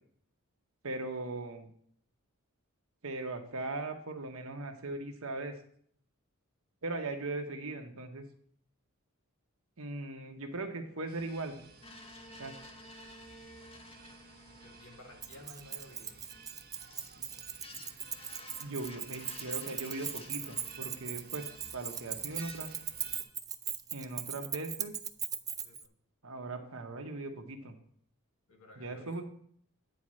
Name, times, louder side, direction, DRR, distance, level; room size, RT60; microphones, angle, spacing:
voice 1, 0.8-1.7 3.0-5.5 6.8-8.2 9.8-11.6 12.4-12.5 18.6-21.4 21.7-22.7 23.9-24.9 26.2-27.8 28.8-29.2, right 2 dB, 70° right, 4 dB, 1.2 m, -39 dB
sound 1, 11.1-23.2, right 4 dB, 45° right, 1.3 m, -56 dB
sound 2, 11.8-17.2 17.6-22.0 22.3-22.8, left 2 dB, 25° left, 0.8 m, -53 dB
voice 2, 14.6-16.2 25.6-25.9 28.5-29.2, left 1 dB, 80° left, 2 dB, 1.9 m, -54 dB
Keys jangling, 15.2-25.8, right 8 dB, 15° right, 0.3 m, -39 dB
9.4 x 4.3 x 6.2 m, 0.62 s
head